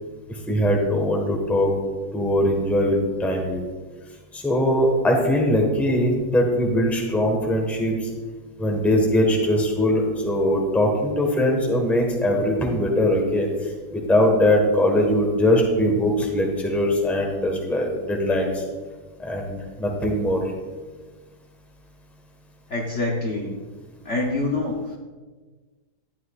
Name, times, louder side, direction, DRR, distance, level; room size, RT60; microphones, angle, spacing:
voice 1, 0.5-1.7 2.1-3.6 4.3-8.1 8.6-13.5 13.9-18.6 19.2-20.4, left 1 dB, ahead, 0 dB, 1.1 m, -21 dB
voice 2, 22.7-23.5 24.0-25.0, left 2 dB, 50° left, -1 dB, 1.1 m, -26 dB
12.0 x 9.1 x 2.4 m, 1.4 s
omnidirectional pair, 1.9 m